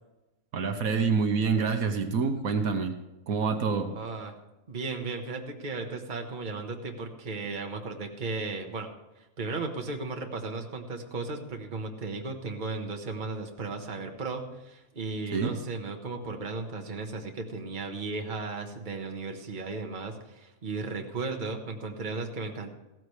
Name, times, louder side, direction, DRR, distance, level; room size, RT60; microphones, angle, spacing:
voice 1, 0.5-3.0 3.3-3.9 15.3-15.6, right 5 dB, 75° right, 6 dB, 1.4 m, -27 dB
voice 2, 3.9-4.3 4.7-8.9 9.2-22.7, right 3 dB, 35° right, 4 dB, 1.3 m, -35 dB
15.5 x 13.5 x 3.3 m, 1.0 s
omnidirectional pair, 1.5 m